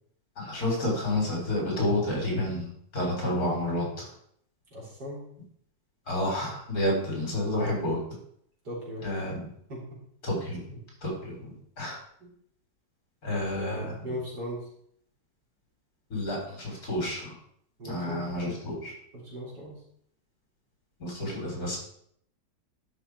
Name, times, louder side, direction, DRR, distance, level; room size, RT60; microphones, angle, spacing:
voice 1, 0.4-4.1 6.1-8.0 9.0-9.5 10.2-10.6 11.0-12.0 13.2-14.0 16.1-17.4 17.8-18.9 21.0-21.8, left 1 dB, 55° left, -1 dB, 3.9 m, -30 dB
voice 2, 4.7-5.2 8.6-9.0 9.7-9.8 10.7-10.8 12.2-12.3 13.4-14.7 17.8-18.2 19.1-19.7, equal, 65° right, -5 dB, 4.2 m, -38 dB
11.5 x 5.7 x 4.6 m, 0.68 s
omnidirectional pair, 1.9 m